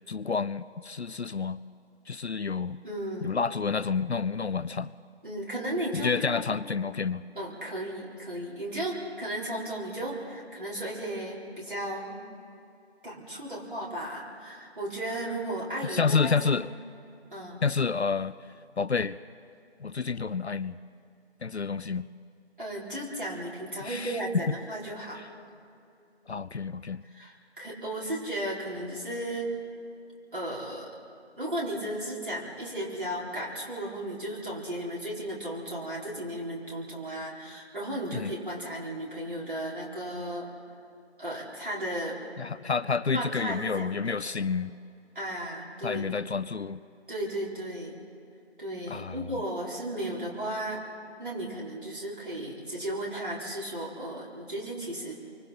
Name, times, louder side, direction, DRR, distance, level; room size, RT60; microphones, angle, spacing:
voice 1, 0.1-1.6 2.1-2.8 3.2-4.9 5.9-7.2 15.8-16.7 17.6-18.4 18.8-19.2 19.8-20.8 21.4-22.1 23.8-24.4 26.3-27.0 38.1-38.3 42.4-44.8 45.8-46.8 48.9-49.2, left 5 dB, 70° left, 17 dB, 0.5 m, -29 dB
voice 2, 2.8-3.3 5.2-6.1 7.3-12.2 13.0-16.7 17.3-17.6 22.6-25.2 27.1-29.5 30.3-30.9 31.4-40.4 41.2-42.2 43.1-44.2 45.1-46.1 47.1-47.9 48.6-50.8 51.2-55.1, right 1 dB, 50° right, -5 dB, 4.5 m, -35 dB
27.0 x 24.5 x 4.3 m, 2.6 s
figure-of-eight pair, 170°, 34 cm